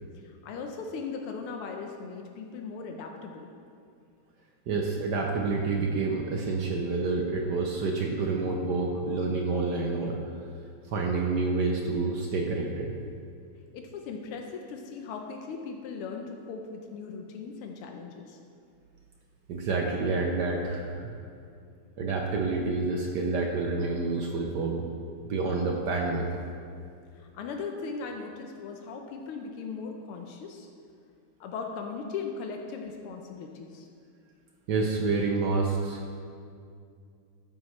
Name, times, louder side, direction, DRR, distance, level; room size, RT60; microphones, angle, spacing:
voice 1, 0.2-3.5 13.7-18.4 27.2-30.7 31.4-33.9, left 5 dB, 90° left, 3 dB, 1.7 m, -38 dB
voice 2, 4.7-10.2 10.9-12.9 19.5-21.1 22.0-24.9 25.3-26.3 34.7-36.2, right 3 dB, 65° right, 1 dB, 1.2 m, -28 dB
13.5 x 7.3 x 3.2 m, 2.4 s
omnidirectional pair, 2.4 m